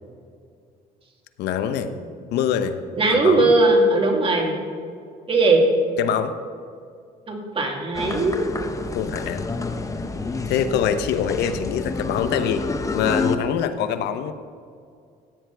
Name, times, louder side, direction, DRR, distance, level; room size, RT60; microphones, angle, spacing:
voice 1, 1.4-1.9 2.3-2.8 3.1-3.5 6.0-6.3 8.9-9.5 10.5-14.3, left 8 dB, 80° left, 10 dB, 0.8 m, -24 dB
voice 2, 3.0-4.6 5.3-5.6 7.3-8.5 10.5-10.8, right 2 dB, 30° right, 1 dB, 2.1 m, -19 dB
sound 1, 7.9-13.4, left 3 dB, 20° left, 0.8 m, -29 dB
15.0 x 9.0 x 3.4 m, 2.3 s
cardioid pair, 110°, 17 cm